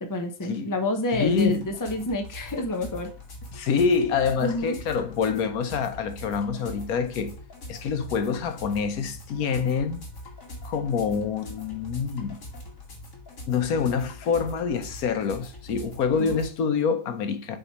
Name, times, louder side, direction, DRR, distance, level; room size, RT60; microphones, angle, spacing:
voice 1, 0.0-3.1 4.4-4.8 16.2-16.4, left 2 dB, 20° left, 0.7 m, -29 dB
voice 2, 1.1-1.7 3.5-7.3 7.7-10.0 10.6-12.4 13.5-17.6, left 6 dB, 85° left, 1.3 m, -26 dB
sound 1, 1.1-16.5, left 1 dB, 65° left, 2.1 m, -42 dB
7.6 x 3.5 x 4.2 m
omnidirectional pair, 1.5 m